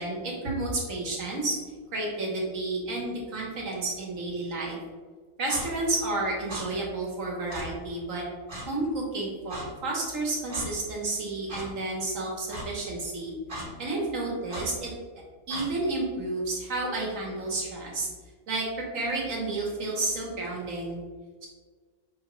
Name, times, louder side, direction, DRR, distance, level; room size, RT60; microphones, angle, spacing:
voice 1, 0.0-1.5 1.9-4.8 5.4-8.2 8.7-13.3 13.8-14.9 15.5-18.1 18.5-18.6 18.9-21.0, right 2 dB, 70° right, -2 dB, 1.5 m, -31 dB
Clock, 5.5-5.7 6.5-6.6 7.5-7.6 8.5-8.7 9.5-9.7 10.5-10.7 11.5-11.6 12.5-12.7 13.5-13.7 14.5-14.7 15.5-15.7, equal, 40° right, 1.7 m, -37 dB
4.8 x 3.6 x 3.0 m, 1.5 s
omnidirectional pair, 1.4 m